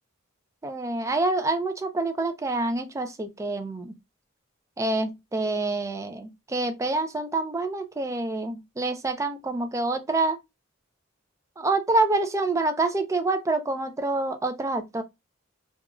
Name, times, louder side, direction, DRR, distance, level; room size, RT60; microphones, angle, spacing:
voice 1, 0.6-3.9 4.8-10.4 11.6-15.0, right 2 dB, 15° right, 0.3 m, -27 dB
3.0 x 2.2 x 2.3 m
head